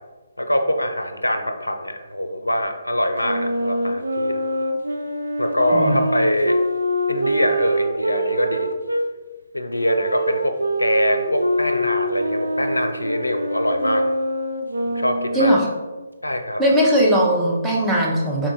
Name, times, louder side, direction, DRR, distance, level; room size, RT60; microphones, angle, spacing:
voice 1, 0.4-4.4 5.4-6.6 7.1-8.7 9.5-14.1 14.9-15.6 16.2-16.6, left 1 dB, 80° left, 7 dB, 0.4 m, -23 dB
Wind instrument woodwind instrument, 3.2-9.0 9.8-15.6, equal, 75° right, 0.4 m, -24 dB
voice 2, 5.7-6.0 15.3-15.7 16.6-18.5, equal, 5° right, -4 dB, 0.6 m, -18 dB
3.7 x 2.3 x 4.0 m, 1.2 s
figure-of-eight pair, 140°, 0 cm